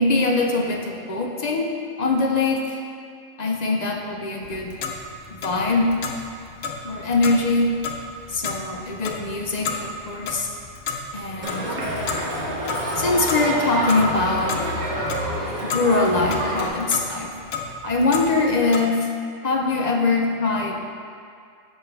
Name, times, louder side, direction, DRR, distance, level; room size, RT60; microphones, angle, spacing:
voice 1, 0.0-2.8 3.4-4.7 5.3-6.0 6.8-7.7 8.3-10.5 11.1-11.7 13.0-14.6 15.6-17.3 17.8-19.0 19.4-20.8, left 3 dB, 45° left, 1 dB, 0.5 m, -22 dB
Clock, 4.4-18.8, left 4 dB, 75° left, 1.0 m, -34 dB
Crowd, 11.4-16.7, right 1 dB, 60° right, 1.4 m, -27 dB
7.7 x 7.1 x 3.3 m, 2.3 s
omnidirectional pair, 1.3 m